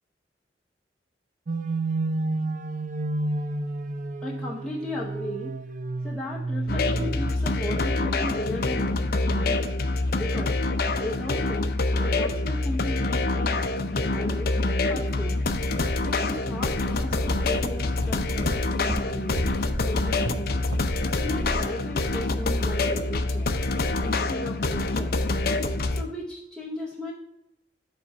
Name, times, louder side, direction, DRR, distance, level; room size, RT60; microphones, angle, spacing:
sound 1, 1.5-7.7, right 2 dB, 45° right, 0.4 m, -30 dB
voice 1, 4.2-5.6 6.0-9.7 10.2-10.6 11.0-11.7 12.0-14.5 14.9-15.4 16.0-19.5 19.8-20.6 21.1-23.6 24.0-25.3 25.9-27.1, left 1 dB, ahead, -6 dB, 0.8 m, -36 dB
sound 2, 6.7-26.0, left 2 dB, 55° left, 0.6 m, -26 dB
sound 3, 17.1-21.0 21.3-21.6, right 1 dB, 85° right, 1.3 m, -34 dB
7.5 x 4.2 x 5.6 m, 0.83 s
head